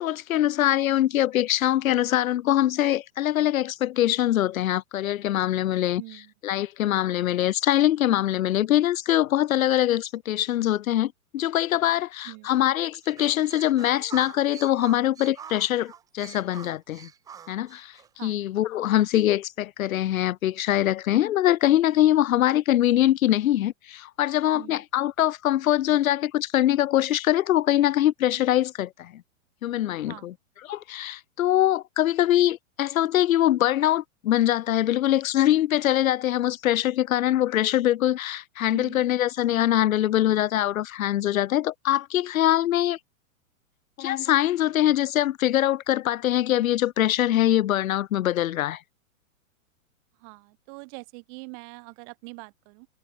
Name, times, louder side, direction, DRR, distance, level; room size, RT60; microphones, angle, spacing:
voice 1, 0.0-6.0 6.4-17.1 17.5-17.9 18.2-29.1 29.6-30.3 30.7-43.0 44.0-48.8, left 13 dB, 75° left, 0.7 m, -23 dB
voice 2, 5.9-6.3 12.2-12.6 18.1-18.5 24.5-24.8 30.1-30.4 38.7-39.1 50.2-52.9, right 40 dB or more, 25° right, 6.3 m, -44 dB
sound 1, 13.0-18.1, right 8 dB, 10° right, 2.0 m, -44 dB
hypercardioid pair, 175°, 42 cm